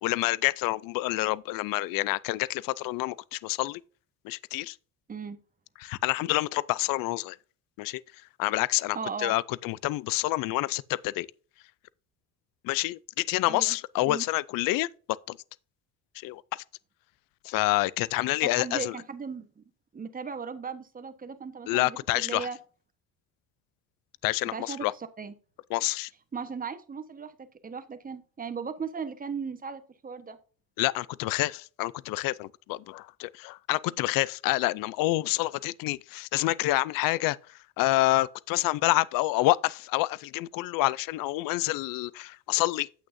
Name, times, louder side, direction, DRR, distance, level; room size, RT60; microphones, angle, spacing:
voice 1, 0.0-3.8 4.2-4.8 5.8-7.4 7.8-8.0 8.4-11.3 12.6-14.9 15.3-15.4 16.2-16.6 17.4-18.9 21.7-22.5 24.2-24.9 25.7-26.1 30.8-37.4 37.8-42.9, left 19 dB, 65° left, 0.5 m, -28 dB
voice 2, 8.9-9.4 13.5-13.8 14.0-14.2 18.6-19.6 19.9-22.6 24.5-25.3 26.3-30.4, right 5 dB, 25° right, 1.2 m, -37 dB
9.2 x 8.3 x 2.6 m
cardioid pair, 105°, 36 cm